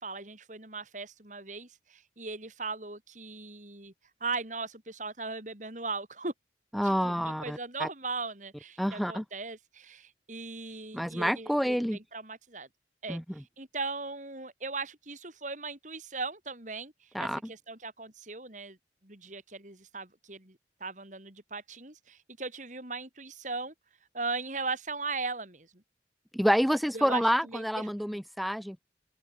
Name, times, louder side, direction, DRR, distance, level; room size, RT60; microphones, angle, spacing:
voice 1, 0.0-3.9 4.2-6.3 6.8-12.7 13.0-16.9 17.2-18.8 19.0-23.7 24.1-25.7 26.9-28.2, right 3 dB, 45° right, 4.8 m, -38 dB
voice 2, 6.7-7.9 8.8-9.2 10.9-12.0 13.1-13.2 17.1-17.4 26.3-28.8, equal, ahead, 6.2 m, -28 dB
head